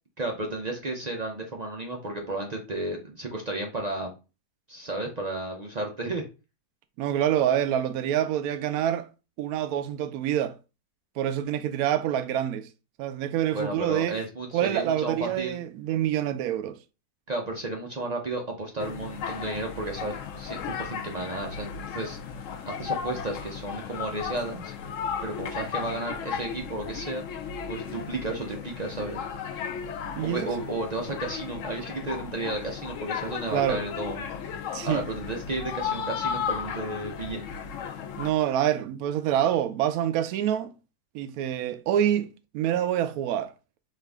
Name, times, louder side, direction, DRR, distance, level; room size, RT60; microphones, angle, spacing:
voice 1, 0.2-4.1 4.7-6.2 13.5-15.6 17.3-22.2 22.7-24.7 25.2-27.2 27.7-29.2 30.2-34.3 34.8-37.5, right 2 dB, 55° right, 0.4 m, -33 dB
voice 2, 7.0-9.1 9.4-10.6 11.2-12.7 13.0-14.2 14.5-16.8 30.1-30.5 33.5-33.8 34.7-35.0 38.2-40.7 41.1-43.5, right 11 dB, 70° right, 1.0 m, -26 dB
sound 1, 18.8-38.3, left 7 dB, 65° left, 0.8 m, -35 dB
5.6 x 2.5 x 3.4 m
omnidirectional pair, 1.7 m